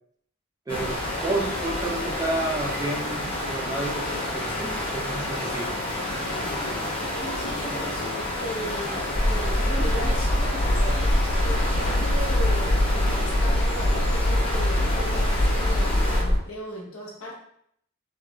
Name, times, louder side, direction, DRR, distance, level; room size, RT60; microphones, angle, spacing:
sound 1, 0.7-16.2, left 1 dB, 25° left, 0.8 m, -30 dB
voice 1, 0.7-4.1 4.3-5.8, right 2 dB, 15° right, -2 dB, 0.5 m, -30 dB
voice 2, 7.1-17.3, equal, 85° left, -4 dB, 1.0 m, -36 dB
sound 2, 9.1-16.4, left 1 dB, 50° right, 1.5 m, -23 dB
3.5 x 3.2 x 2.3 m, 0.70 s
head